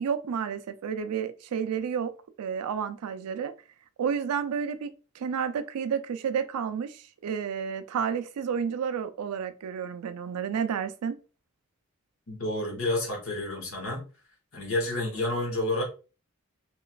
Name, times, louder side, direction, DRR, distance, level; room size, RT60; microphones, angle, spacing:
voice 1, 0.0-2.1 2.4-3.5 4.0-11.2, right 7 dB, 90° right, 0.3 m, -31 dB
voice 2, 12.3-14.0 14.5-15.8, left 2 dB, 70° left, 1.0 m, -29 dB
3.0 x 2.4 x 2.2 m
head